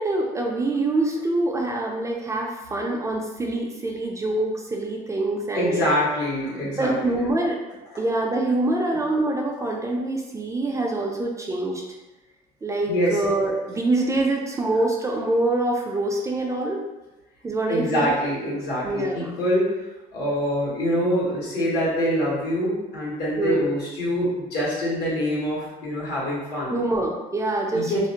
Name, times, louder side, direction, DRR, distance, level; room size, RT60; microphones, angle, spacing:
voice 1, 0.0-5.8 6.8-7.6 8.0-11.8 12.6-16.8 17.4-18.1 18.8-19.3 23.4-23.7 26.7-27.9, right 2 dB, 20° right, 0 dB, 0.3 m, -25 dB
voice 2, 5.5-6.9 10.9-11.0 12.9-13.2 17.7-19.7 20.1-26.8 27.7-28.0, equal, 75° left, -7 dB, 1.2 m, -25 dB
2.5 x 2.0 x 2.8 m, 1.1 s
cardioid pair, 110°, 17 cm